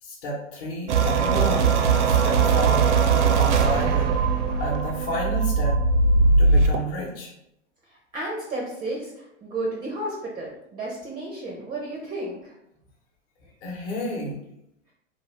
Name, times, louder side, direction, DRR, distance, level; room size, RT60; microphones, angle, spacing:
voice 1, 0.0-4.2 4.6-5.8 6.4-7.3 13.6-14.4, equal, 45° left, -4 dB, 0.9 m, -31 dB
sound 1, 0.9-6.8, right 4 dB, 65° right, 0.5 m, -20 dB
voice 2, 7.9-12.5, right 1 dB, 15° right, -2 dB, 0.4 m, -32 dB
2.5 x 2.4 x 3.2 m, 0.78 s
hypercardioid pair, 110°, 38 cm